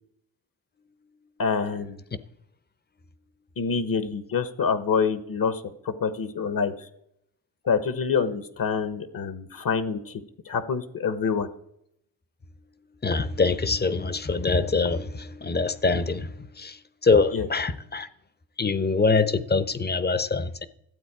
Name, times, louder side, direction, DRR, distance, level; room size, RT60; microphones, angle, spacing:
voice 1, 1.4-2.0 3.6-6.9 7.6-10.2 10.5-11.5 17.3-17.5, left 5 dB, 50° left, 1.0 m, -26 dB
voice 2, 13.0-18.1 18.6-20.7, left 4 dB, 25° left, 0.7 m, -24 dB
12.5 x 8.1 x 4.8 m
cardioid pair, 75°, 43 cm